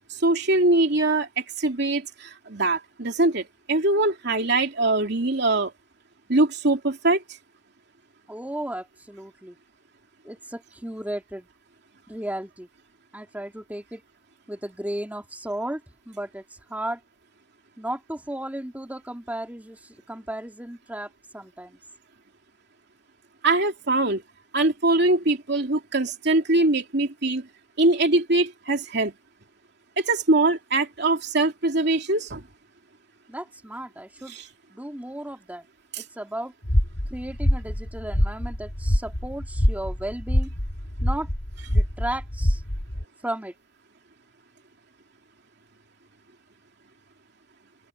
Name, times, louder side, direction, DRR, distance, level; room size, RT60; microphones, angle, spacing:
voice 1, 0.1-5.7 6.3-7.2 23.4-24.2 24.5-27.5 27.8-29.1 30.0-32.4 34.3-34.4 35.9-36.0, right 2 dB, 60° right, 3.1 m, -22 dB
voice 2, 8.3-9.6 10.2-11.5 12.1-12.7 13.1-14.0 14.5-15.8 16.1-16.4 16.7-17.0 17.8-21.8 33.3-34.4 34.7-35.7 36.0-36.5 37.1-40.5 41.0-41.3 41.7-42.6 43.2-43.5, right 1 dB, 10° right, 2.5 m, -34 dB
sound 1, 36.6-43.0, equal, 55° left, 3.1 m, -25 dB
open air
head